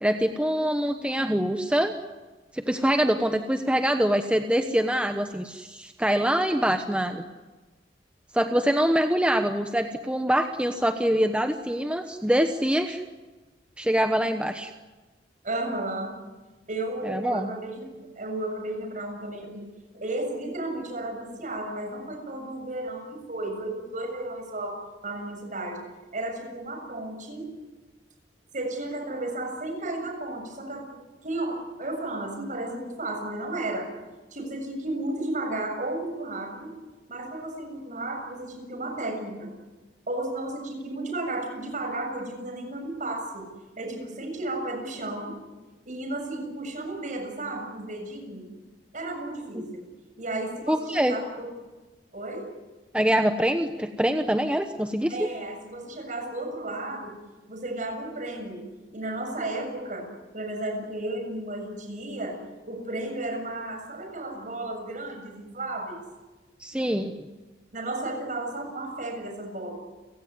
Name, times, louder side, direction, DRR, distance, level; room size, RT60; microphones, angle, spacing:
voice 1, 0.0-1.9 2.5-7.2 8.3-13.0 13.8-14.7 17.0-17.5 49.5-49.6 50.7-51.1 52.9-55.3 66.6-67.1, equal, 5° right, 6 dB, 1.0 m, -24 dB
voice 2, 15.4-16.2 16.7-19.7 19.9-24.8 25.0-25.8 26.1-27.5 28.5-33.9 34.3-36.7 37.1-39.5 40.1-43.4 43.8-45.3 45.9-48.5 48.9-49.8 50.2-51.5 52.1-52.5 55.1-57.1 57.5-58.6 58.9-62.4 62.7-66.0 67.7-69.7, right 2 dB, 50° right, 4 dB, 7.0 m, -33 dB
30.0 x 17.5 x 9.7 m, 1.2 s
head